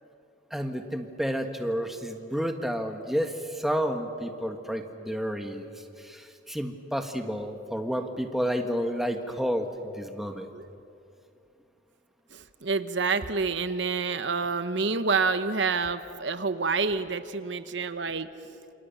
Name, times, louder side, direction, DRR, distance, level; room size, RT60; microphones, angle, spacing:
voice 1, 0.5-10.5, equal, ahead, 4 dB, 1.5 m, -30 dB
voice 2, 12.3-18.3, right 4 dB, 60° right, 11 dB, 0.9 m, -28 dB
28.0 x 26.5 x 7.2 m, 2.7 s
head